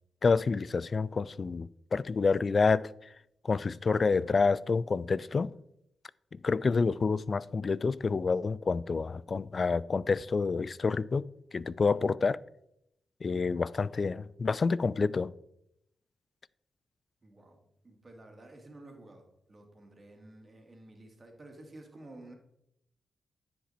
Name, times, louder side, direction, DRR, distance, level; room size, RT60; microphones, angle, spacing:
voice 1, 0.2-2.9 3.4-5.5 6.3-11.2 11.5-12.4 13.2-15.3, left 4 dB, 50° left, 0.3 m, -28 dB
voice 2, 17.2-17.6 17.8-22.3, right 2 dB, 35° right, 2.3 m, -52 dB
9.9 x 5.1 x 4.3 m
supercardioid pair, 55°, 0 cm